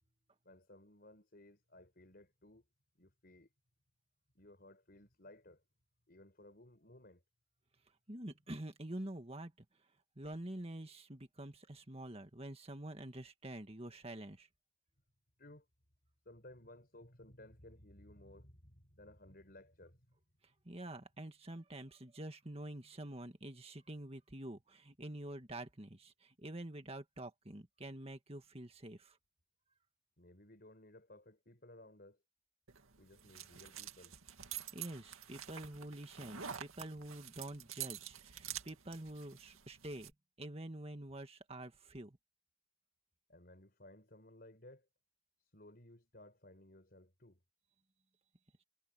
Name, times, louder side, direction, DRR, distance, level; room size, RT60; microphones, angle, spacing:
voice 1, 0.4-2.7 3.0-3.5 4.4-5.6 6.1-7.2 15.4-15.7 16.3-20.1 30.2-32.2 33.0-34.2 43.3-44.9 45.4-47.4, left 1 dB, 45° left, 5.3 m, -58 dB
voice 2, 8.1-9.7 10.2-14.5 20.7-29.2 34.5-40.1 40.4-42.2, right 1 dB, 30° right, 1.9 m, -47 dB
sound 1, 32.7-40.1, right 9 dB, 90° right, 2.2 m, -48 dB
head